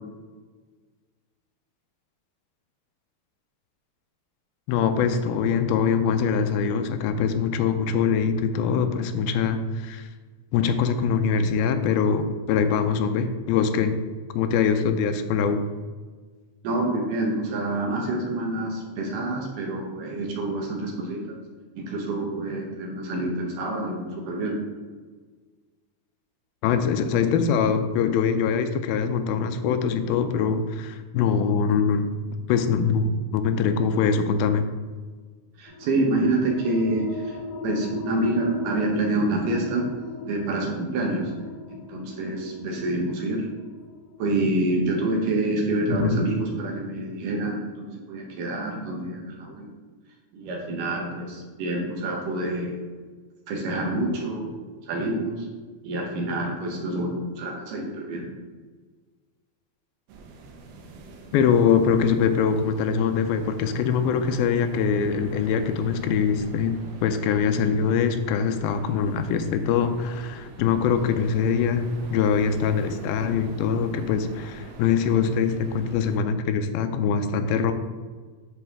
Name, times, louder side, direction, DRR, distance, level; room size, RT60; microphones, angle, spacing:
voice 1, 4.7-10.1 10.5-14.0 14.4-15.6 26.6-32.1 32.5-34.6 45.9-46.2 61.3-77.7, left 6 dB, 85° left, 8 dB, 2.4 m, -23 dB
voice 2, 16.6-21.4 21.8-24.6 35.6-37.4 37.6-39.9 40.3-41.3 41.7-43.5 44.2-49.7 50.3-52.8 53.5-54.5 54.9-55.5 55.8-58.3, right 2 dB, 70° right, 0 dB, 2.3 m, -27 dB
sound 1, 35.7-46.9, left 4 dB, 25° left, 1.4 m, -38 dB
sound 2, 60.1-76.2, right 3 dB, 85° right, 2.8 m, -44 dB
10.0 x 4.1 x 3.6 m, 1.4 s
omnidirectional pair, 4.3 m